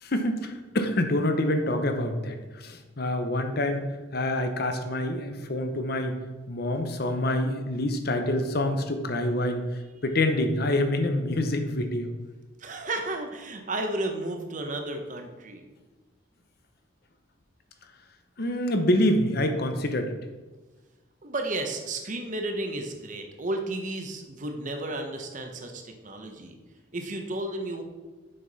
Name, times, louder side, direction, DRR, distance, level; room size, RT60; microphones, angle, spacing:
voice 1, 0.0-3.8 4.1-6.2 6.5-9.7 10.0-12.1 18.4-20.1, left 1 dB, 50° left, 7 dB, 0.7 m, -26 dB
voice 2, 12.6-15.6 21.2-26.5 26.9-27.8, right 2 dB, 40° right, 4 dB, 0.8 m, -33 dB
7.7 x 5.8 x 4.1 m, 1.3 s
head